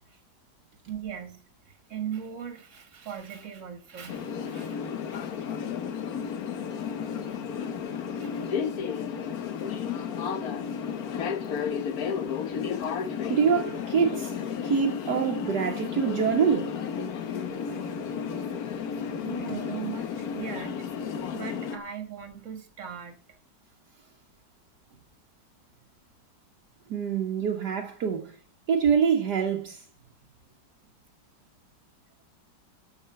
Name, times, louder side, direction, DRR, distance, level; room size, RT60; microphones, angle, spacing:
voice 1, 0.9-1.4 1.9-4.8 5.1-5.5 7.3-7.4 8.2-8.5 17.7-17.8 19.2-20.8 21.3-23.2, right 8 dB, 45° right, 2.0 m, -39 dB
sound 1, 4.1-21.8, left 7 dB, 60° left, 1.4 m, -33 dB
voice 2, 13.3-14.3 14.6-16.7 26.9-28.3 28.7-29.8, right 6 dB, 70° right, 1.6 m, -25 dB
12.5 x 5.4 x 5.7 m
omnidirectional pair, 1.9 m